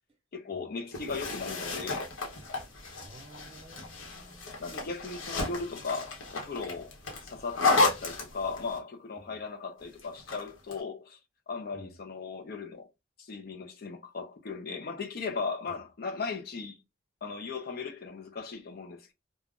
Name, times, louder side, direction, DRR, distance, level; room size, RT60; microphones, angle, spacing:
voice 1, 0.3-2.0 4.6-7.0 7.2-11.2 11.5-12.9 13.2-16.8 17.2-19.1, left 4 dB, 50° left, 0.4 m, -37 dB
sound 1, 0.9-8.8 10.0-10.8, left 3 dB, 85° left, 0.8 m, -32 dB
voice 2, 3.0-4.5 9.2-9.4 11.7-11.9, right 2 dB, 30° right, 0.7 m, -52 dB
2.3 x 2.0 x 3.5 m
head